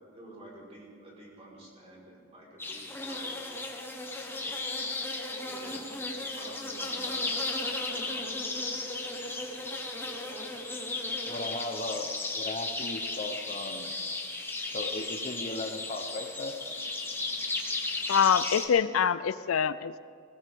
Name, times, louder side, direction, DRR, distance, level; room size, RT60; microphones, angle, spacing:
voice 1, 0.0-3.4 5.4-6.0 6.3-7.3 7.9-8.3 10.0-10.3, right 1 dB, 30° right, -4 dB, 4.6 m, -50 dB
sound 1, 2.6-18.7, left 2 dB, 10° left, 1.3 m, -35 dB
voice 2, 11.3-13.9 14.7-16.5, left 2 dB, 35° left, 4 dB, 0.9 m, -37 dB
voice 3, 18.1-20.0, left 7 dB, 85° left, 16 dB, 0.4 m, -25 dB
20.0 x 18.0 x 3.7 m, 2.3 s
head